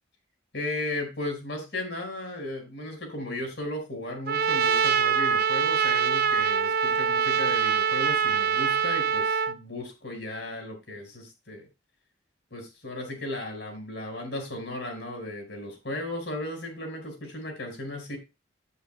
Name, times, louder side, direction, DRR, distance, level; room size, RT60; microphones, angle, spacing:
voice 1, 0.5-11.7 12.5-18.2, left 1 dB, 65° left, 3 dB, 4.9 m, -35 dB
Trumpet, 4.3-9.5, right 7 dB, 50° right, 0.6 m, -24 dB
15.5 x 8.1 x 2.2 m, 0.26 s
head